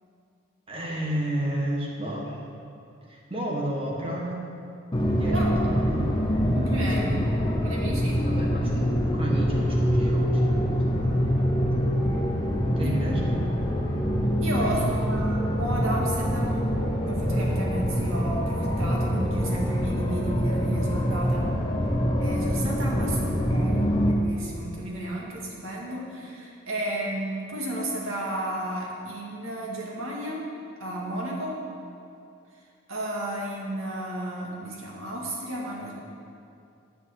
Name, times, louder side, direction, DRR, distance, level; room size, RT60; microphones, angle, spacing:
voice 1, 0.7-2.4 3.1-4.4 5.0-5.5 5.8-6.2 7.0-7.1 8.2-11.5 12.8-13.4 14.6-15.3 22.9-23.3, right 1 dB, 25° right, -2 dB, 1.6 m, -32 dB
sound 1, 4.9-24.1, equal, 20° left, 0.8 m, -25 dB
voice 2, 5.3-5.8 6.5-7.3 7.6-8.2 12.0-12.3 12.8-13.0 14.4-16.7 17.0-21.5 22.2-30.4 30.8-31.6 32.9-35.9, right 1 dB, 90° right, -3 dB, 2.3 m, -33 dB
10.5 x 5.5 x 8.0 m, 2.5 s
head